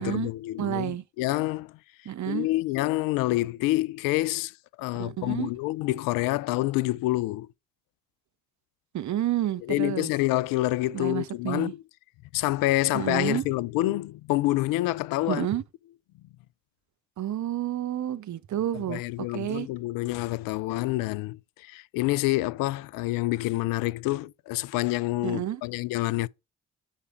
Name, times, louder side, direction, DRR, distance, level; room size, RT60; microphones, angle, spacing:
voice 1, 0.0-1.7 2.2-4.5 4.8-7.5 9.7-11.8 12.3-15.5 18.7-26.3, left 18 dB, 75° left, 0.5 m, -27 dB
voice 2, 0.6-1.0 2.1-2.5 5.0-5.5 8.9-10.1 10.9-11.7 12.9-13.4 15.3-15.6 17.2-19.7 25.2-25.6, right 12 dB, 55° right, 0.8 m, -30 dB
7.2 x 4.9 x 4.4 m
hypercardioid pair, 45°, 34 cm